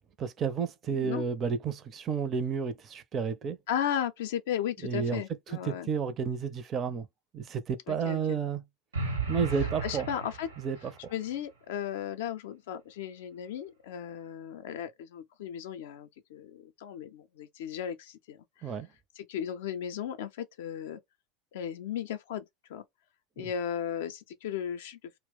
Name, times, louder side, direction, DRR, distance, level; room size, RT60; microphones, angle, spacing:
voice 1, 0.2-3.6 4.8-5.2 5.7-7.1 7.3-8.6 9.3-10.1 10.6-10.9 18.6-18.9 23.4-23.5, right 6 dB, 35° right, 0.4 m, -31 dB
voice 2, 0.9-1.2 3.7-5.9 7.9-8.4 9.8-10.5 11.1-18.7 19.2-21.0 21.5-22.4 22.7-22.8 23.4-25.0, left 9 dB, 60° left, 0.4 m, -35 dB
sound 1, 8.9-11.0, right 4 dB, 80° right, 0.8 m, -34 dB
2.2 x 2.0 x 3.5 m
figure-of-eight pair, 75°, 0 cm